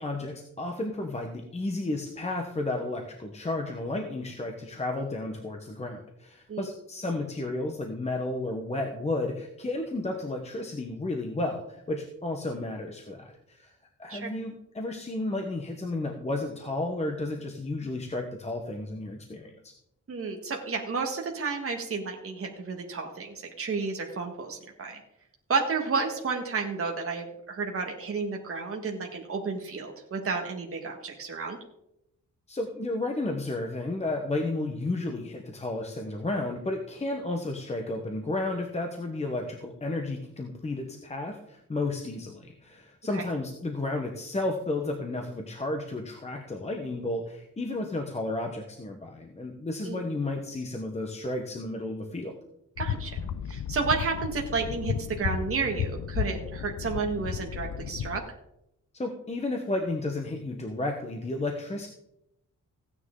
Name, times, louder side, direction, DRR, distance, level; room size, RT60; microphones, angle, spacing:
voice 1, 0.0-13.7 14.0-19.7 32.5-52.4 58.9-61.9, left 2 dB, 20° left, 3 dB, 1.1 m, -32 dB
voice 2, 20.1-25.0 25.5-31.6 43.1-43.3 49.8-50.0 52.8-53.2 53.5-58.2, right 4 dB, 45° right, 1 dB, 1.7 m, -31 dB
sound 1, 52.8-58.2, left 8 dB, 70° left, 0.7 m, -33 dB
16.0 x 9.7 x 3.8 m, 0.80 s
wide cardioid pair, 175°, 32 cm